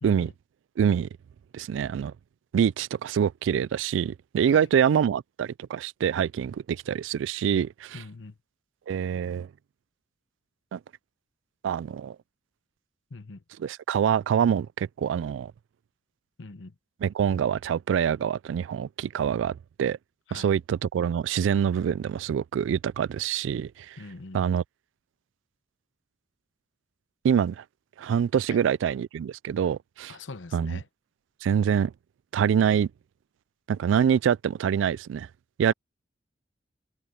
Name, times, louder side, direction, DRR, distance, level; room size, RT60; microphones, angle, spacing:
voice 1, 0.0-0.3 4.5-4.7 7.9-8.3 13.1-13.4 16.4-16.7 20.3-20.5 24.0-24.4 28.5-28.6 30.1-30.9, left 3 dB, 85° left, 0.8 m, -42 dB
voice 2, 0.8-1.1 1.5-2.1 2.5-8.0 8.9-9.5 10.7-10.8 11.6-12.2 13.6-15.5 17.0-20.0 20.3-24.0 24.3-24.6 27.2-27.6 28.0-30.2 30.5-30.8 31.4-31.9 32.3-32.9 33.7-35.3 35.6-35.7, right 8 dB, 80° right, 0.3 m, -25 dB
head